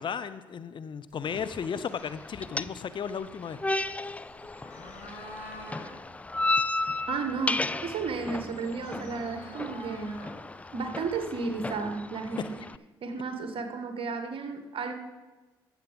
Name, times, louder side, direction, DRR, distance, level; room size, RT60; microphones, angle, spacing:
voice 1, 0.0-3.6, left 7 dB, 45° left, 12 dB, 0.6 m, -35 dB
sound 1, 1.1-11.9, equal, 75° left, 2.8 m, -48 dB
sound 2, 1.3-12.8, left 2 dB, 10° left, 0.3 m, -34 dB
voice 2, 7.1-10.2 10.7-12.6 13.0-14.9, right 4 dB, 50° right, 7 dB, 1.5 m, -33 dB
14.5 x 7.4 x 5.2 m, 1.2 s
hypercardioid pair, 50°, 11 cm